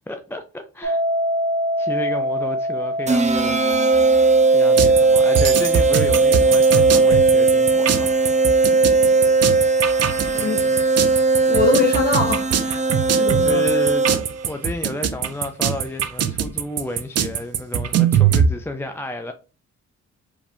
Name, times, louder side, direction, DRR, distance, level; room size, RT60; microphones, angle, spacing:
voice 1, 0.1-1.0 1.8-3.6 4.5-8.2 8.6-8.8 9.3-9.4 13.4-14.1 14.5-19.3, left 2 dB, 10° left, 0.4 m, -31 dB
sound 1, 0.8-11.7, equal, 80° right, 2.0 m, -28 dB
sound 2, 3.1-14.5, right 3 dB, 25° right, 0.8 m, -18 dB
sound 3, 4.8-18.5, right 8 dB, 55° right, 0.7 m, -21 dB
voice 2, 10.3-10.8 11.4-12.8 13.2-13.7, left 4 dB, 30° left, 1.4 m, -23 dB
5.0 x 3.3 x 2.7 m
cardioid pair, 90°, 30 cm